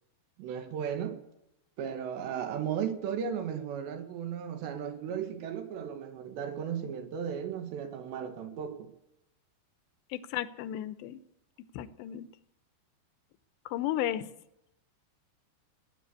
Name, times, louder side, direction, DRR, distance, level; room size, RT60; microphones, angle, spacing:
voice 1, 0.4-1.2 1.8-8.9, right 8 dB, 85° right, 3.8 m, -35 dB
voice 2, 10.1-11.2 11.7-12.3 13.7-14.3, left 12 dB, 90° left, 3.0 m, -34 dB
17.5 x 9.8 x 8.3 m
omnidirectional pair, 4.9 m